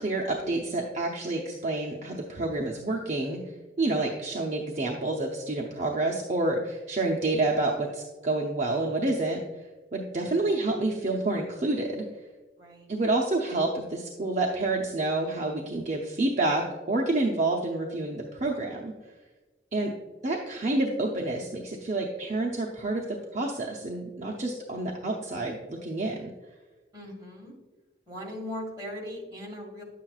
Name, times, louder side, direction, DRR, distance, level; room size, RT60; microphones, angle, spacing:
voice 1, 0.0-3.4 3.8-9.6 9.9-12.0 12.9-18.9 19.7-19.9 20.2-26.3, right 2 dB, 40° right, 0 dB, 0.7 m, -28 dB
voice 2, 12.6-12.9 26.9-27.5 28.1-29.8, left 1 dB, 20° right, -2 dB, 1.7 m, -39 dB
9.7 x 7.5 x 2.4 m, 1.2 s
head